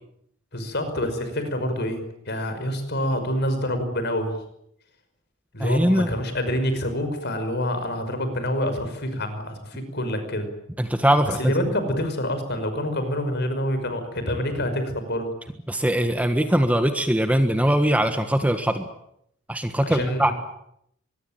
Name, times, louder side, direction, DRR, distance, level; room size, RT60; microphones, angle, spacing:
voice 1, 0.5-4.4 5.5-10.5 11.4-15.3 19.8-20.3, left 1 dB, 50° left, 9 dB, 5.7 m, -27 dB
voice 2, 5.6-6.1 10.8-11.5 15.7-18.8 19.5-20.3, right 1 dB, 5° right, 7 dB, 1.5 m, -21 dB
24.5 x 21.5 x 9.1 m, 0.74 s
head